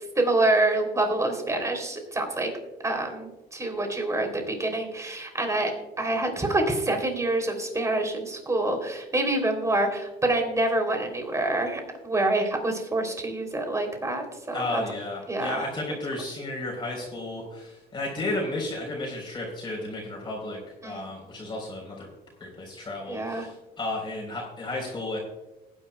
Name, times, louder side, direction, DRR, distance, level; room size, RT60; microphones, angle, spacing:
voice 1, 0.1-2.5 2.8-14.8 15.3-15.6 20.8-21.1 23.1-23.5, right 2 dB, 20° right, 4 dB, 3.1 m, -26 dB
voice 2, 14.5-22.1 22.4-25.2, left 2 dB, 30° left, -2 dB, 3.8 m, -33 dB
19.5 x 10.0 x 2.3 m, 1.0 s
cardioid pair, 110°, 17 cm